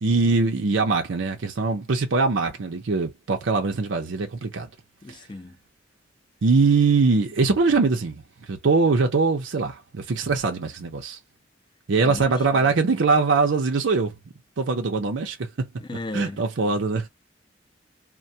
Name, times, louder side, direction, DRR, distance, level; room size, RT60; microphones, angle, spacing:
voice 1, 0.0-4.7 6.4-8.2 8.5-11.2 11.9-14.1 14.6-15.7 16.1-17.1, right 4 dB, 85° right, 0.6 m, -22 dB
voice 2, 5.0-5.6 12.0-12.7 15.8-16.4, left 2 dB, 25° left, 0.4 m, -36 dB
2.2 x 2.1 x 2.6 m
head